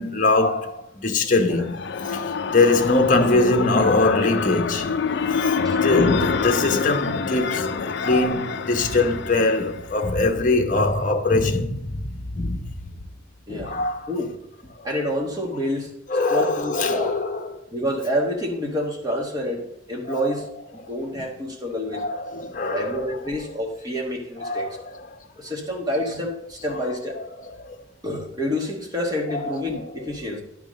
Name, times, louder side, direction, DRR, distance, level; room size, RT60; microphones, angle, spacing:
voice 1, 0.0-1.8 2.0-4.9 5.3-12.7 13.5-14.1 14.8-14.9 16.1-17.6 20.1-20.3 21.9-23.1 24.4-25.1 27.6-27.8, left 3 dB, 40° left, 0.9 m, -22 dB
sound 1, 1.3-10.2, left 5 dB, 55° left, 0.4 m, -26 dB
voice 2, 13.5-13.8 14.1-14.4 14.8-15.9 16.3-17.1 17.7-22.0 22.7-24.8 25.4-27.2 28.0-30.4, equal, 20° right, 1.4 m, -28 dB
11.0 x 3.6 x 6.3 m
head